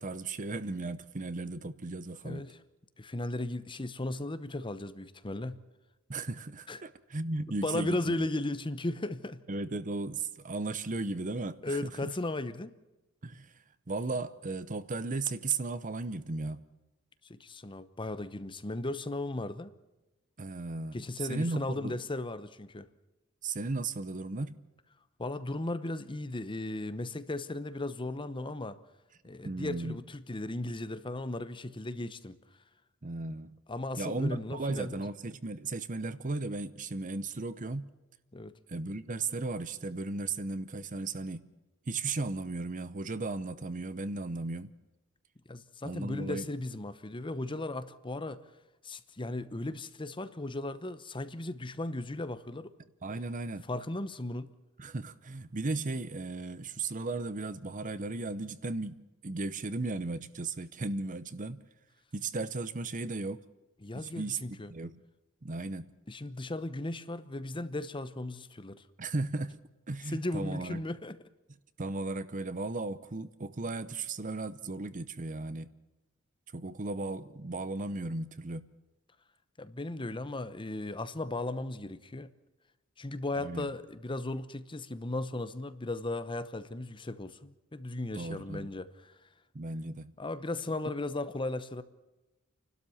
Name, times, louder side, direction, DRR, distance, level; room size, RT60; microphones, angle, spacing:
voice 1, 0.0-2.5 6.1-8.2 9.5-12.1 13.2-13.5 13.9-16.6 20.4-21.9 23.4-24.7 29.4-30.0 33.0-33.6 34.0-37.9 38.7-41.4 41.9-44.7 45.8-46.5 53.0-53.6 54.8-61.6 62.1-63.4 63.9-65.0 65.4-65.9 69.0-69.6 69.9-70.8 71.8-75.7 76.5-78.6 83.4-83.7 88.1-88.7 89.5-90.1, right 3 dB, 40° right, 0.8 m, -36 dB
voice 2, 2.2-2.6 3.0-5.6 6.7-6.8 7.6-9.4 11.6-12.7 17.2-19.7 20.9-22.9 25.2-28.8 29.2-32.4 33.7-35.0 38.3-38.6 45.5-48.4 48.8-52.7 53.7-54.5 63.8-64.7 66.1-68.8 70.0-71.2 79.6-82.3 83.0-89.2 90.2-91.8, left 2 dB, 25° left, 0.9 m, -36 dB
29.5 x 12.5 x 7.1 m
head